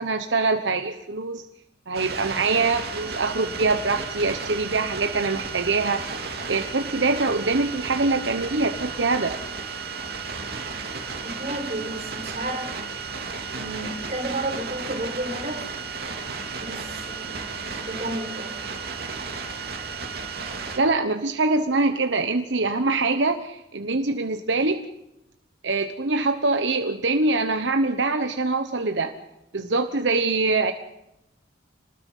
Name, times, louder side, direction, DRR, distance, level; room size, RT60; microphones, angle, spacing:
voice 1, 0.0-1.4 1.9-6.0 6.5-9.4 20.8-24.8 25.6-29.1 29.5-30.7, right 3 dB, 75° right, 7 dB, 1.1 m, -24 dB
sound 1, 1.9-20.8, right 4 dB, 55° right, 2.9 m, -34 dB
voice 2, 11.2-13.0 13.6-15.7 16.6-18.8, right 1 dB, 40° right, 1 dB, 5.3 m, -32 dB
27.0 x 20.0 x 5.6 m, 0.87 s
head